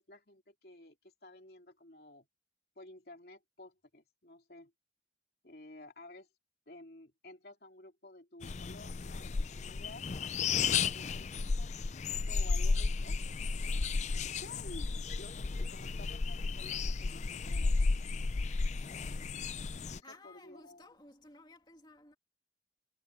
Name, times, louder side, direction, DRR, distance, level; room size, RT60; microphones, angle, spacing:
voice 1, 0.0-2.3 2.8-4.7 5.4-6.3 6.7-10.1 10.6-13.2 14.2-18.1 19.9-20.9, left 1 dB, 60° left, 3.1 m, -53 dB
sound 1, 8.4-20.0, left 4 dB, 40° left, 0.4 m, -33 dB
voice 2, 20.0-22.1, left 2 dB, 25° left, 2.6 m, -56 dB
head